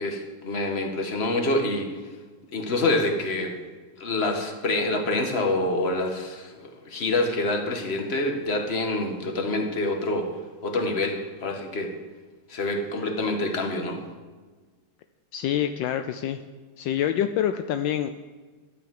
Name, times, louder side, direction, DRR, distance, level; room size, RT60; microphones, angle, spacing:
voice 1, 0.0-1.9 2.5-3.5 4.0-6.5 6.8-10.3 10.6-11.9 12.5-14.0, left 2 dB, 35° left, 4 dB, 1.6 m, -26 dB
voice 2, 15.3-16.4 16.8-18.1, left 10 dB, 75° left, 8 dB, 1.2 m, -26 dB
12.0 x 7.1 x 7.6 m, 1.4 s
omnidirectional pair, 2.1 m